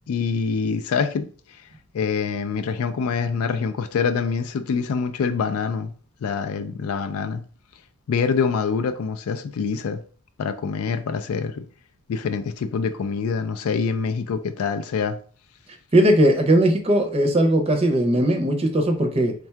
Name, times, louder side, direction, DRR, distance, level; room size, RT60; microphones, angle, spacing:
voice 1, 0.1-1.3 1.9-5.9 6.2-7.4 8.1-10.0 10.4-11.6 12.1-15.2, left 5 dB, 85° left, 0.4 m, -25 dB
voice 2, 15.9-19.3, right 1 dB, 25° right, 0.5 m, -19 dB
3.5 x 2.3 x 4.4 m
head